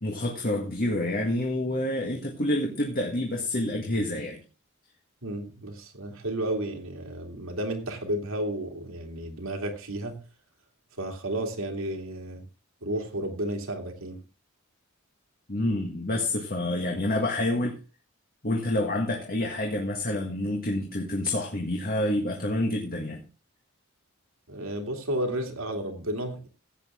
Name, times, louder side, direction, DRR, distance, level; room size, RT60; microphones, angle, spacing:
voice 1, 0.0-4.4 15.5-17.8 18.4-23.2, left 1 dB, 45° left, 1 dB, 1.7 m, -28 dB
voice 2, 5.2-10.2 11.0-12.4 12.8-14.2 24.5-26.5, right 1 dB, 80° right, 3 dB, 2.6 m, -32 dB
15.5 x 8.4 x 3.7 m, 0.33 s
head